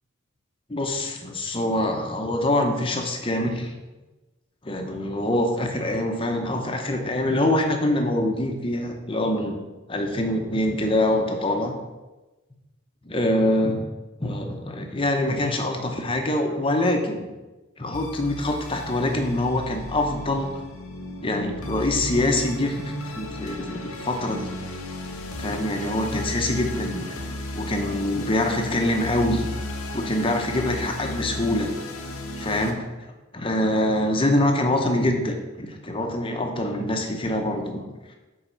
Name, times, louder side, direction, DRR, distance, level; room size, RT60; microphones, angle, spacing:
voice 1, 0.7-3.7 4.6-9.6 9.9-11.7 13.0-13.8 14.2-17.3 17.8-20.6 21.2-24.5 25.4-29.5 29.9-31.7 32.4-32.9 33.3-37.8, left 1 dB, 25° left, 3 dB, 0.8 m, -25 dB
sound 1, 17.9-32.7, left 1 dB, 90° left, 0.9 m, -34 dB
5.7 x 4.8 x 5.6 m, 1.1 s
head